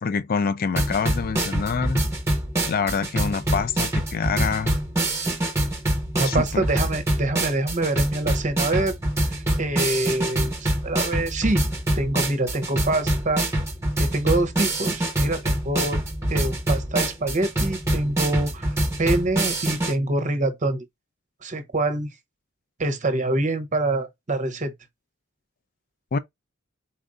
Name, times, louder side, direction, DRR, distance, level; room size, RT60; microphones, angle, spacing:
voice 1, 0.0-2.0 2.7-4.8 6.3-6.7 26.1-26.2, left 5 dB, 45° left, 0.4 m, -26 dB
sound 1, 0.8-19.9, right 1 dB, 15° right, 1.2 m, -25 dB
voice 2, 6.2-9.0 9.2-11.6 11.9-13.4 14.0-16.0 16.3-18.7 19.0-20.8 21.4-22.1 22.8-24.7, right 2 dB, 35° right, 0.8 m, -25 dB
4.4 x 2.5 x 3.6 m
head